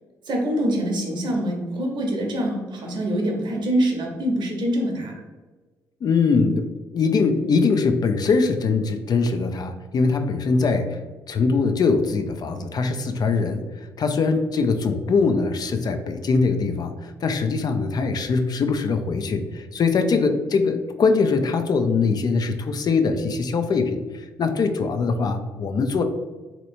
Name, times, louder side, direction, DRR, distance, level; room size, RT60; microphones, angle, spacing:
voice 1, 0.3-5.2, right 1 dB, 55° right, 1 dB, 0.8 m, -25 dB
voice 2, 6.0-11.0 11.3-26.0, left 4 dB, 45° left, 7 dB, 0.4 m, -22 dB
3.2 x 2.9 x 2.6 m, 1.3 s
hypercardioid pair, 50°, 9 cm